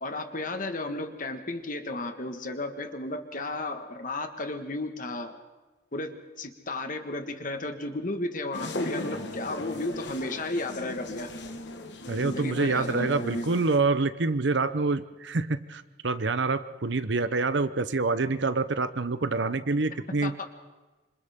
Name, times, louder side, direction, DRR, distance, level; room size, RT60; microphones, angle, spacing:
voice 1, 0.0-5.4 5.9-11.3 12.1-13.4 20.1-20.5, left 2 dB, 45° left, 6 dB, 1.7 m, -34 dB
sound 1, 8.5-13.8, left 1 dB, 60° left, 1.5 m, -37 dB
voice 2, 12.1-20.4, right 3 dB, 65° right, 12 dB, 0.8 m, -27 dB
27.0 x 26.0 x 3.7 m, 1.2 s
head